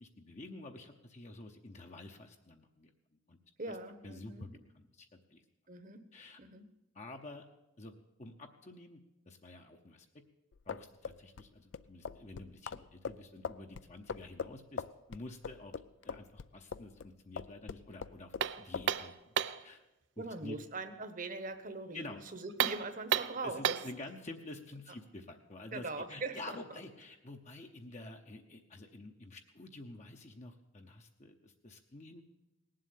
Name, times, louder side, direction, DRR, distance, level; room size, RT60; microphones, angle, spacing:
voice 1, 0.0-2.9 3.3-3.4 3.7-3.8 4.0-4.5 4.7-5.4 6.1-6.4 6.9-7.4 7.8-7.9 8.2-9.0 9.3-10.1 10.7-14.8 15.1-15.7 16.0-19.3 19.6-19.8 20.2-20.6 21.9-22.2 23.4-32.2, left 2 dB, 35° left, 3 dB, 0.8 m, -49 dB
voice 2, 3.6-4.5 5.7-6.0 6.4-6.7 20.2-22.1 22.3-23.8 25.7-26.4, right 3 dB, 40° right, 9 dB, 1.1 m, -41 dB
sound 1, 10.5-17.1 17.4-18.5 18.7-18.9, left 6 dB, 70° left, 0.4 m, -41 dB
sound 2, 18.4-19.7 22.5-24.0, right 8 dB, 60° right, 0.5 m, -32 dB
19.0 x 7.7 x 8.4 m, 1.0 s
head